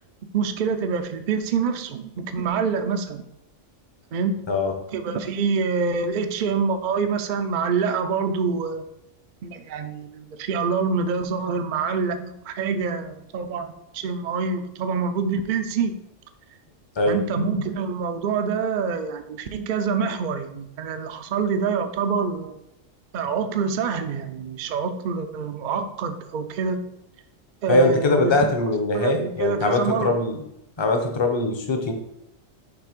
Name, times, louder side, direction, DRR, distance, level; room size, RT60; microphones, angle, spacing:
voice 1, 0.3-3.2 4.1-4.5 4.9-8.8 9.4-15.9 17.1-22.6 23.1-26.9 27.6-28.3 28.9-30.2, right 5 dB, 60° right, 8 dB, 0.5 m, -26 dB
voice 2, 4.5-4.8 17.0-17.2 27.7-30.4 30.8-31.9, left 2 dB, 30° left, 4 dB, 0.6 m, -21 dB
5.9 x 3.3 x 5.1 m, 0.81 s
omnidirectional pair, 1.4 m